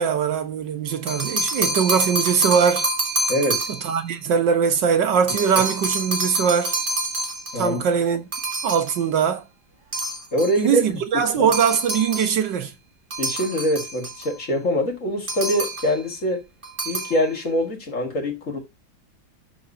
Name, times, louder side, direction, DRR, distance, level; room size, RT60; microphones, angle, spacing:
voice 1, 0.0-2.9 3.8-6.8 7.6-8.2 8.6-9.4 10.6-12.7, right 7 dB, 65° right, 1.7 m, -21 dB
sound 1, 0.9-4.0 5.3-7.7 8.3-9.0 9.9-10.6 11.5-12.4 13.1-14.3 15.3-16.0 16.6-17.2, right 2 dB, 30° right, 1.5 m, -27 dB
voice 2, 3.3-3.7 7.5-7.8 10.3-11.5 13.2-16.4 16.9-18.6, equal, 40° left, 2.3 m, -24 dB
12.5 x 4.2 x 2.7 m
omnidirectional pair, 2.1 m